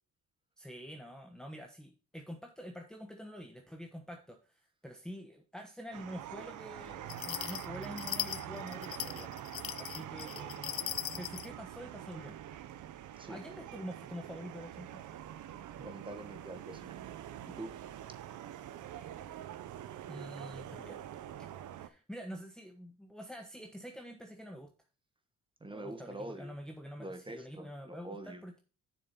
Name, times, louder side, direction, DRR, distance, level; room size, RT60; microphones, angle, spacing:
voice 1, 0.6-9.3 9.7-10.7 11.2-12.4 13.3-14.9 19.2-19.5 20.1-21.1 21.4-21.5 21.8-24.7 25.7-28.6, equal, ahead, 3 dB, 1.1 m, -46 dB
sound 1, 5.9-21.9, right 11 dB, 80° right, 0.9 m, -45 dB
sound 2, 7.1-11.5, left 13 dB, 50° left, 0.4 m, -39 dB
voice 2, 15.8-17.1 17.4-17.8 25.6-26.5 27.0-28.4, right 1 dB, 15° right, 8 dB, 1.7 m, -45 dB
7.4 x 6.6 x 4.3 m, 0.34 s
cardioid pair, 90°, 30 cm